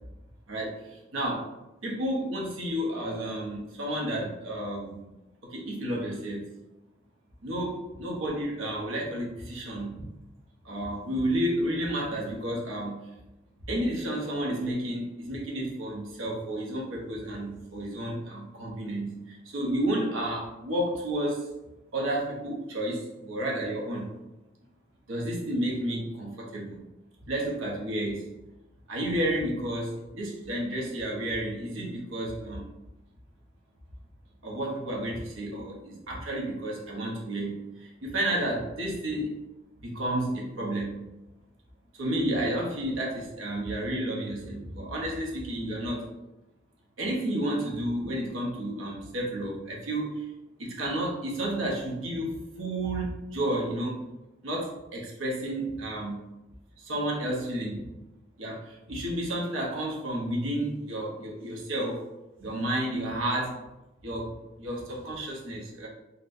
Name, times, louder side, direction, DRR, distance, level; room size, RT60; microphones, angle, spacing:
voice 1, 0.5-1.5 1.8-5.0 5.4-6.5 7.4-10.0 10.6-13.1 13.7-21.5 21.9-24.1 25.1-26.8 27.3-28.3 28.9-32.7 34.4-39.4 39.8-41.0 41.9-46.1 47.0-50.3 50.6-54.0 54.4-56.2 56.8-57.9 58.4-62.0 62.4-63.6 64.0-65.9, right 1 dB, 85° right, -2 dB, 0.7 m, -31 dB
3.9 x 2.1 x 2.5 m, 0.97 s
head